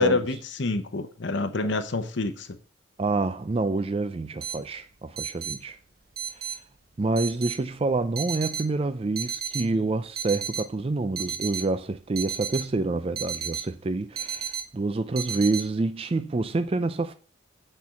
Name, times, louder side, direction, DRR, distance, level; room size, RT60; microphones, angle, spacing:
voice 1, 0.0-2.5, left 3 dB, 65° left, 0.8 m, -27 dB
voice 2, 3.0-5.8 6.3-6.6 7.0-17.1, right 3 dB, 30° right, 0.4 m, -27 dB
sound 1, 4.4-15.6, right 8 dB, 50° right, 1.3 m, -34 dB
8.5 x 4.5 x 7.0 m
head